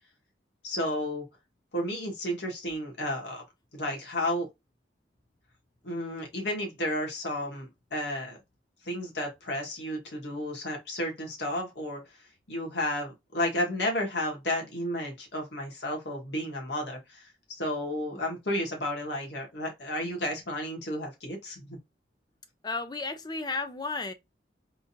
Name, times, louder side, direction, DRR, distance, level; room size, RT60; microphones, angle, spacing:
voice 1, 0.6-1.2 1.7-3.4 3.7-4.5 5.8-8.4 8.8-12.0 12.5-21.8, left 1 dB, 70° left, 1.5 m, -32 dB
voice 2, 22.6-24.1, left 3 dB, 20° left, 0.4 m, -33 dB
3.7 x 2.7 x 2.5 m
head